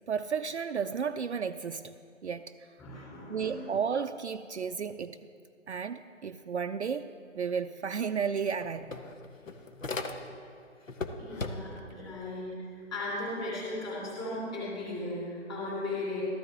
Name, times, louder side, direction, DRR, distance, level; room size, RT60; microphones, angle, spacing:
voice 1, 0.1-1.9 2.2-2.5 3.3-5.2 5.7-7.1 7.4-8.9, right 6 dB, 60° right, 8 dB, 0.5 m, -33 dB
voice 2, 2.8-3.6 11.2-16.2, left 2 dB, 10° left, -7 dB, 3.0 m, -37 dB
sound 1, 7.9-8.0 8.3-10.5 10.9-11.9, left 3 dB, 80° left, 1.2 m, -38 dB
14.0 x 13.0 x 3.6 m, 2.4 s
figure-of-eight pair, 155°, 39 cm